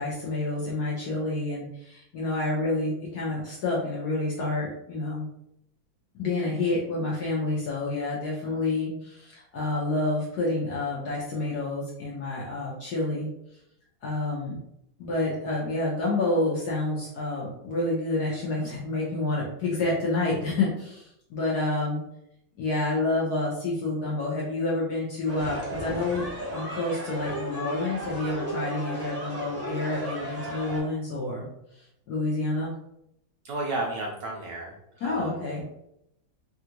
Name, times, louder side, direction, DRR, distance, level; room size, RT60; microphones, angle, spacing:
voice 1, 0.0-5.3 6.2-13.3 14.0-14.6 15.0-22.0 22.6-26.2 26.5-31.5 31.7-32.7 35.0-35.6, left 2 dB, 65° left, -4 dB, 1.0 m, -28 dB
sound 1, 25.3-30.8, right 1 dB, 10° right, 0.9 m, -35 dB
voice 2, 33.4-35.4, right 2 dB, 75° right, -2 dB, 1.0 m, -33 dB
3.4 x 2.4 x 2.8 m, 0.79 s
omnidirectional pair, 2.3 m